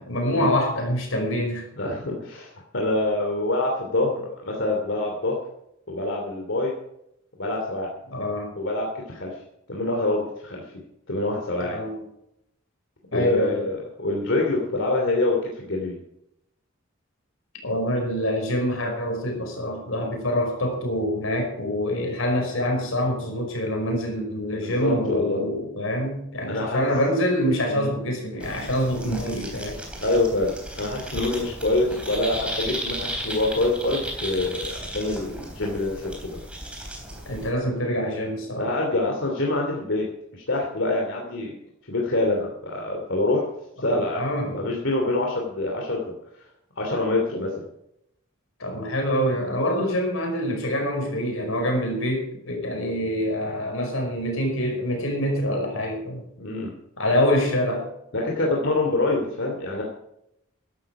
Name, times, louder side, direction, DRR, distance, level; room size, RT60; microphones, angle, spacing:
voice 1, 0.0-1.7 8.1-8.5 11.6-11.9 13.1-13.6 17.6-29.8 37.2-38.7 44.2-44.6 48.6-56.2 57.0-57.9, equal, 80° left, 2 dB, 5.0 m, -25 dB
voice 2, 1.8-5.4 5.9-6.7 7.4-7.9 8.6-9.3 9.7-10.6 11.1-11.8 13.1-16.0 24.6-25.4 26.5-26.9 27.7-27.9 30.0-36.4 38.6-40.1 40.3-41.6 41.9-43.4 43.8-44.3 44.5-46.1 46.8-47.5 56.4-56.7 58.1-59.8, left 2 dB, 60° left, -1 dB, 3.0 m, -25 dB
sound 1, 28.4-37.5, right 1 dB, 5° right, 3.6 m, -35 dB
15.5 x 12.0 x 4.9 m, 0.79 s
head